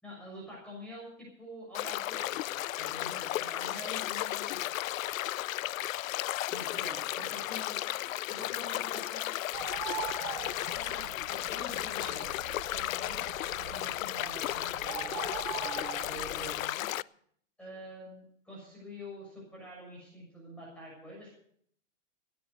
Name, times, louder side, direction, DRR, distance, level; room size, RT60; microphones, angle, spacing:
voice 1, 0.0-2.3 2.8-4.6 6.5-7.7 8.3-9.3 10.7-12.3 12.7-13.2 13.6-15.2 15.5-17.0 17.6-21.4, equal, 5° left, -5 dB, 6.8 m, -46 dB
sound 1, 1.7-17.0, left 15 dB, 80° left, 0.5 m, -34 dB
voice 2, 6.7-9.2 9.7-10.3 10.7-11.1 15.9-16.2 17.6-17.9, right 2 dB, 15° right, -3 dB, 7.8 m, -60 dB
Bird, 9.5-16.7, right 16 dB, 35° right, 0.6 m, -43 dB
17.0 x 10.5 x 6.7 m, 0.64 s
hypercardioid pair, 150°, 39 cm